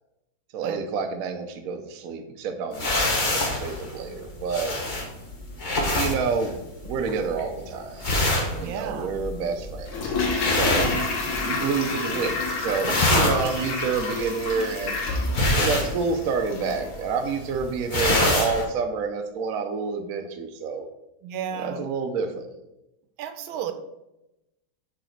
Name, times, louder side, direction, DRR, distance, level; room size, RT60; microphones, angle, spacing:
voice 1, 0.5-4.7 5.9-6.6 6.8-8.1 8.5-10.2 10.4-10.9 11.4-15.0 15.6-20.9 21.5-22.5, right 5 dB, 60° right, 5 dB, 0.9 m, -28 dB
sound 1, 2.7-11.7 12.0-12.4 12.7-18.6, left 1 dB, 35° left, 0.8 m, -26 dB
voice 2, 8.5-9.1 10.7-10.9 12.9-13.0 13.4-13.6 21.2-21.8 23.2-23.7, right 8 dB, 85° right, 9 dB, 1.5 m, -33 dB
Toilet flush, 9.9-16.9 17.2-17.3, left 3 dB, 85° left, 2.1 m, -29 dB
6.5 x 5.0 x 4.5 m, 0.91 s
omnidirectional pair, 2.2 m